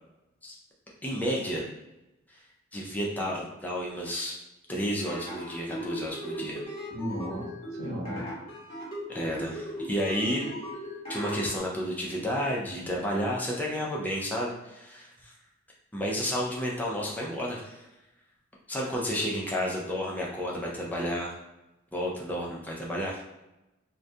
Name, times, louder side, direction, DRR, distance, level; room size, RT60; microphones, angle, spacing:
voice 1, 1.0-1.6 2.7-4.4 4.7-6.6 9.1-10.4 11.1-15.3 15.9-17.8 18.7-21.3 21.9-23.2, equal, 10° left, -3 dB, 0.4 m, -31 dB
sound 1, 5.0-11.5, equal, 30° left, 1.0 m, -38 dB
voice 2, 6.9-8.3, equal, 90° right, -1 dB, 0.7 m, -35 dB
2.3 x 2.1 x 2.6 m, 0.98 s
head